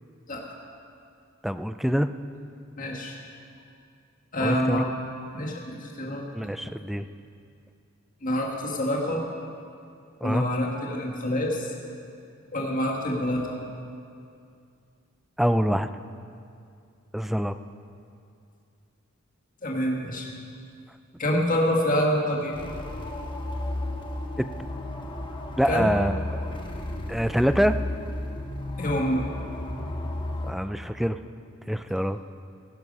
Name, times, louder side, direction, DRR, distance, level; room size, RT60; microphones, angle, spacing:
voice 1, 1.4-2.1 4.4-4.9 6.3-7.1 10.2-10.5 15.4-15.9 17.1-17.5 24.4-24.5 25.6-26.2 27.1-27.8 30.5-31.2 31.7-32.2, equal, ahead, 10 dB, 0.4 m, -25 dB
voice 2, 2.8-3.2 4.3-4.9 5.3-6.3 8.2-9.2 10.2-11.7 12.5-13.6 19.6-20.3 21.2-22.5 25.7-25.9 28.8-29.3, equal, 40° left, -1 dB, 1.8 m, -26 dB
sound 1, 22.5-30.5, left 1 dB, 25° left, 1.2 m, -33 dB
17.0 x 11.0 x 5.5 m, 2.4 s
head